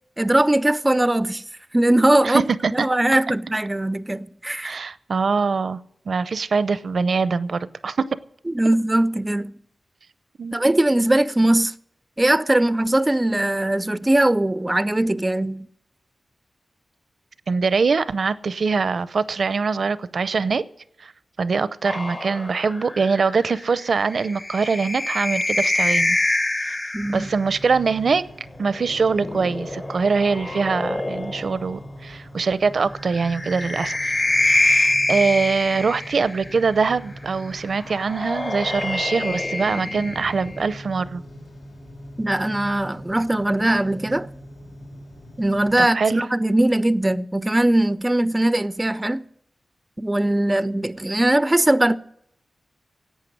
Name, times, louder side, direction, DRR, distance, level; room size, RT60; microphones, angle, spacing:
voice 1, 0.2-1.4 1.7-2.4 2.7-4.8 8.5-9.5 10.5-11.7 12.2-15.7 26.9-27.3 42.2-44.3 45.4-49.2 50.0-52.0, right 1 dB, 15° right, 0.4 m, -20 dB
voice 2, 2.2-2.9 4.6-5.8 6.1-8.1 10.4-10.6 17.5-20.6 21.0-21.1 21.4-26.2 27.1-28.2 28.6-34.1 34.4-41.2 45.8-46.2, right 4 dB, 70° right, 0.6 m, -23 dB
sound 1, 21.8-27.4 28.8-31.7 33.1-36.6 37.8-40.8, left 2 dB, 30° left, 0.9 m, -26 dB
sound 2, 27.0-45.9, equal, 90° left, 3.1 m, -41 dB
11.5 x 8.4 x 10.0 m
wide cardioid pair, 75°, 0 cm